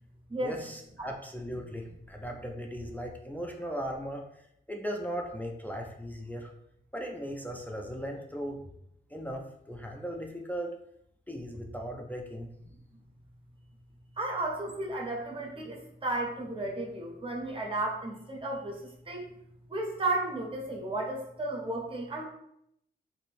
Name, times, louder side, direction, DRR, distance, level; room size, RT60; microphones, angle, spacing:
voice 1, 0.4-4.2 4.7-6.5 6.9-8.6 9.1-10.7 11.3-12.5, equal, 10° left, 1 dB, 0.3 m, -37 dB
voice 2, 14.2-19.3 19.7-22.2, right 2 dB, 30° right, 0 dB, 0.7 m, -33 dB
2.6 x 2.6 x 3.3 m, 0.75 s
wide cardioid pair, 120°, 19 cm